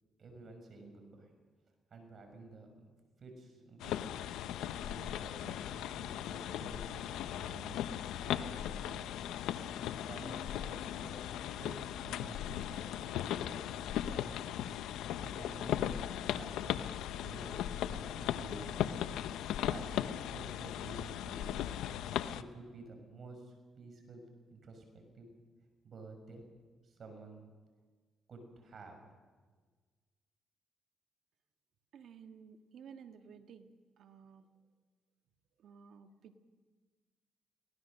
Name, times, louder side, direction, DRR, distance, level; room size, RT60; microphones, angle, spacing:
voice 1, 0.2-1.3 1.9-2.9 3.2-4.1 4.8-9.2 10.0-11.2 11.6-13.0 13.3-14.3 15.2-16.8 17.2-19.2 19.7-20.0 20.3-21.8 22.3-25.3 25.8-26.4 26.8-27.4 28.3-29.0, right 3 dB, 50° right, 4 dB, 6.3 m, -51 dB
sound 1, 3.8-22.4, left 11 dB, 85° left, 0.7 m, -38 dB
Bass guitar, 10.2-16.5, left 4 dB, 5° left, 4.6 m, -57 dB
voice 2, 31.9-33.7 34.0-34.5 35.6-36.4, right 7 dB, 70° right, 7 dB, 1.6 m, -54 dB
23.5 x 18.0 x 6.7 m, 1.4 s
cardioid pair, 90°, 0 cm